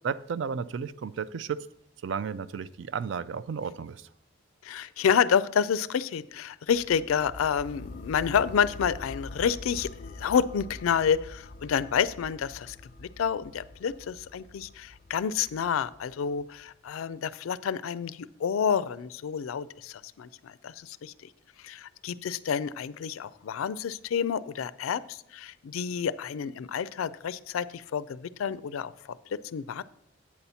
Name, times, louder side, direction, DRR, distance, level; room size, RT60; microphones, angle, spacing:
voice 1, 0.0-1.7 2.0-4.1, right 6 dB, 60° right, 16 dB, 0.3 m, -33 dB
voice 2, 4.6-21.1 21.6-29.8, left 7 dB, 90° left, 17 dB, 0.4 m, -29 dB
sound 1, 6.7-16.6, left 2 dB, 40° left, 0.5 m, -45 dB
8.6 x 4.2 x 6.9 m, 0.76 s
head